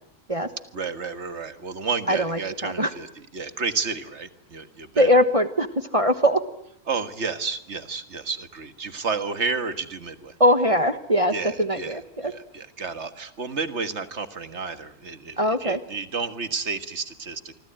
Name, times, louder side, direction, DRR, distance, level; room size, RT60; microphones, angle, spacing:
voice 1, 0.7-3.1 3.3-5.1 6.9-10.3 11.3-17.5, right 4 dB, 50° right, 10 dB, 1.9 m, -31 dB
voice 2, 2.1-2.9 5.0-5.7 5.9-6.4 10.4-12.3 15.4-15.8, equal, 25° right, 9 dB, 1.2 m, -21 dB
26.0 x 25.0 x 8.9 m, 0.73 s
omnidirectional pair, 1.6 m